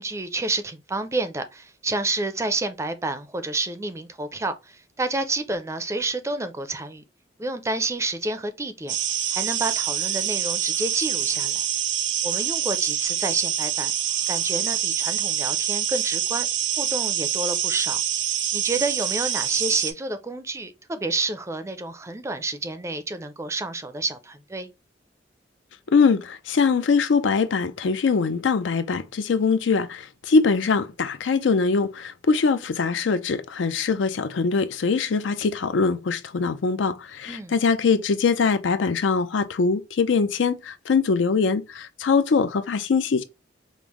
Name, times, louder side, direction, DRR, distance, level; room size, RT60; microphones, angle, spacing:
voice 1, 0.0-7.0 7.4-9.0 9.3-11.6 12.2-13.9 14.3-16.5 16.8-18.0 18.5-24.7 37.3-37.5, right 2 dB, 15° right, 0.4 m, -29 dB
sound 1, 8.9-19.9, right 10 dB, 75° right, 0.6 m, -26 dB
voice 2, 25.9-43.2, left 5 dB, 85° left, 0.5 m, -22 dB
5.2 x 2.0 x 3.0 m
head